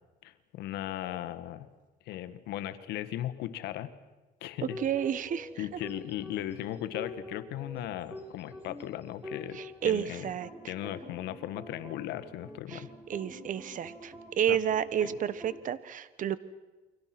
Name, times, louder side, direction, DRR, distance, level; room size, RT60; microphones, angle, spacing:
voice 1, 0.2-1.7 2.0-3.9 4.4-4.8 5.6-10.3 10.7-12.9 14.5-14.6 15.0-15.1, left 13 dB, 85° left, 12 dB, 1.6 m, -37 dB
voice 2, 4.6-5.8 9.5-10.7 12.7-16.4, right 9 dB, 50° right, 16 dB, 1.3 m, -31 dB
sound 1, 4.7-15.6, left 1 dB, 10° right, 5.7 m, -47 dB
29.5 x 24.5 x 6.1 m, 1.2 s
cardioid pair, 110°, 17 cm